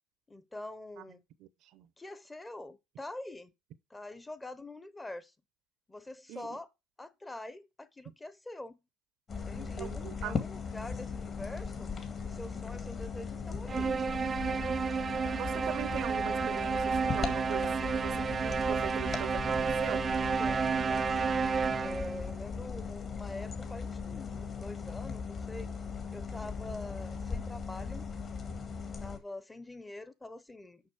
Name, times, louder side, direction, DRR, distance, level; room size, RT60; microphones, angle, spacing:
voice 1, 0.3-1.2 2.0-3.5 3.9-5.3 5.9-6.7 7.0-8.8 9.5-11.9 12.2-14.0 14.4-14.8 20.4-21.4 21.8-25.7 26.1-28.1 29.0-30.8, left 1 dB, 15° left, 0.9 m, -45 dB
sound 1, 9.3-29.2, left 5 dB, 40° left, 1.9 m, -38 dB
voice 2, 9.5-10.4 15.3-20.0, right 12 dB, 60° right, 0.7 m, -41 dB
sound 2, 13.7-22.2, right 5 dB, 30° right, 0.4 m, -31 dB
6.6 x 5.7 x 4.8 m
hypercardioid pair, 80°, 0 cm